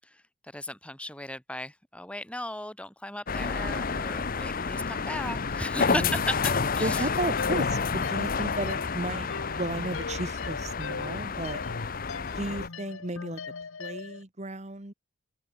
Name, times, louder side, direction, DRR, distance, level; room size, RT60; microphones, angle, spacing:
voice 1, 0.5-6.4 6.8-7.1, left 1 dB, 5° left, 3.1 m, -36 dB
sound 1, 3.3-12.7, left 5 dB, 45° left, 0.8 m, -30 dB
voice 2, 5.9-6.2 6.8-9.3 9.5-11.6 12.3-13.4 13.8-14.9, right 2 dB, 35° right, 1.7 m, -34 dB
sound 2, 7.4-14.2, left 4 dB, 75° left, 1.1 m, -40 dB
open air
head